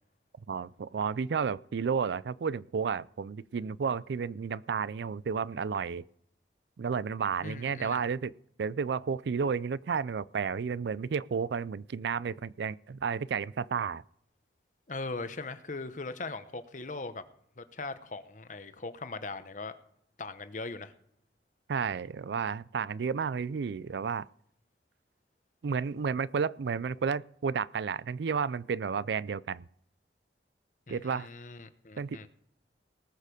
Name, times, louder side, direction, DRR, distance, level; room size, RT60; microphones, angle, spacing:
voice 1, 0.5-6.0 6.8-8.3 8.6-14.0 21.7-24.3 25.6-29.6 30.9-31.3 32.0-32.3, right 6 dB, 70° right, 0.4 m, -32 dB
voice 2, 7.4-8.0 14.9-17.2 17.6-19.7 20.2-20.9 30.9-32.3, left 3 dB, 45° left, 0.9 m, -40 dB
19.5 x 6.6 x 5.2 m
head